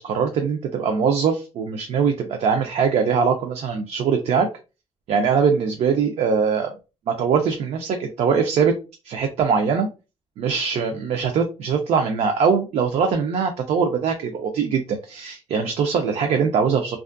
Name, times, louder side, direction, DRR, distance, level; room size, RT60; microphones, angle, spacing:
voice 1, 0.0-4.5 5.1-6.7 7.1-8.7 9.0-9.9 10.4-17.0, right 6 dB, 60° right, 5 dB, 0.4 m, -22 dB
2.5 x 2.3 x 2.4 m, 0.30 s
cardioid pair, 170°, 12 cm